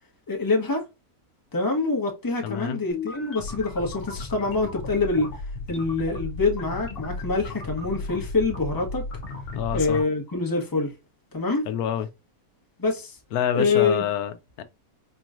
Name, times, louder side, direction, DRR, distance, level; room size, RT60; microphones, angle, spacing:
voice 1, 0.3-0.8 1.5-5.3 5.7-9.0 9.7-10.9 11.3-11.7 12.8-13.2 13.5-14.0, left 3 dB, 15° left, 1.0 m, -25 dB
voice 2, 2.4-2.8 9.5-10.0 11.7-12.1 13.3-14.6, left 8 dB, 85° left, 1.1 m, -27 dB
sound 1, 2.9-10.0, left 3 dB, 45° left, 1.0 m, -35 dB
4.5 x 3.0 x 2.5 m
omnidirectional pair, 1.6 m